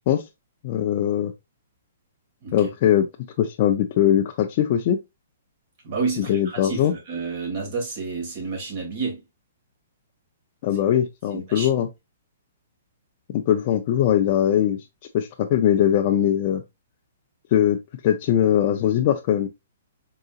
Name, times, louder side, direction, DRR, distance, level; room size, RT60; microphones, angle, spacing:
voice 1, 0.6-1.3 2.5-3.1 3.4-5.0 6.2-6.9 10.6-11.9 13.3-14.9 15.1-16.6 17.5-17.8 18.0-19.5, left 10 dB, 40° left, 0.4 m, -21 dB
voice 2, 5.8-9.2 11.3-11.8, right 4 dB, 50° right, 2.3 m, -30 dB
3.8 x 3.8 x 2.3 m
hypercardioid pair, 155°, 0 cm